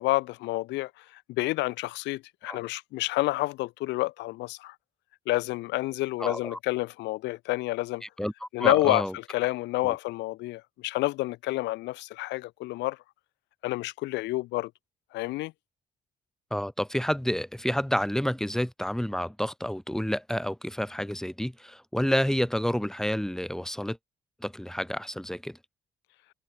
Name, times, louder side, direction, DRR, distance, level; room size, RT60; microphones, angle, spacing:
voice 1, 0.0-4.7 5.3-8.0 8.5-13.0 13.6-14.7 15.1-15.5, left 19 dB, 80° left, 0.4 m, -29 dB
voice 2, 6.2-6.6 8.2-9.1 9.8-9.9 16.5-24.0 24.4-25.6, equal, 5° left, 1.7 m, -29 dB
supercardioid pair, 55°, 18 cm